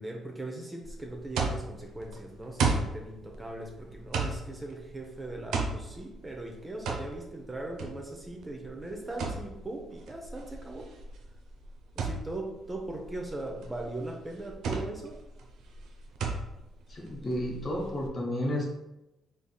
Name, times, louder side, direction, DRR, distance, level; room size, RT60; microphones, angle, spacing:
voice 1, 0.0-10.9 11.9-15.2, right 2 dB, 20° right, 1 dB, 0.5 m, -39 dB
sound 1, 0.8-18.1, right 4 dB, 80° right, 0.4 m, -35 dB
voice 2, 16.9-18.7, left 1 dB, 35° left, -1 dB, 1.0 m, -32 dB
3.8 x 3.3 x 2.2 m, 0.94 s
cardioid pair, 90°, 0 cm